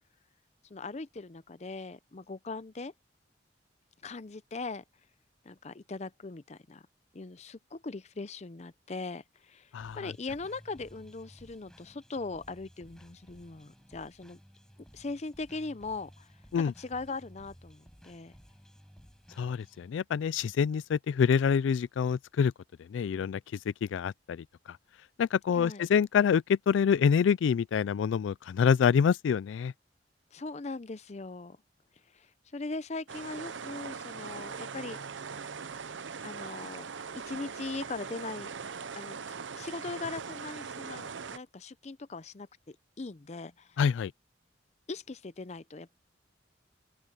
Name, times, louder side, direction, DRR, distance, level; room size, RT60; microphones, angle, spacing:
voice 1, 0.6-2.9 4.0-4.8 5.4-6.8 7.1-14.4 14.9-16.3 16.6-18.3 25.5-25.9 30.3-31.6 32.1-35.0 36.2-36.9 37.1-38.5 39.0-39.2 39.5-43.8 44.9-46.0, left 3 dB, 35° left, 0.6 m, -40 dB
sound 1, 9.8-19.9, equal, 5° left, 6.3 m, -56 dB
voice 2, 19.4-22.5 22.9-23.4 23.8-24.4 25.2-29.7 43.8-44.1, left 7 dB, 85° left, 0.3 m, -26 dB
sound 2, 33.1-41.4, right 5 dB, 85° right, 0.7 m, -41 dB
open air
head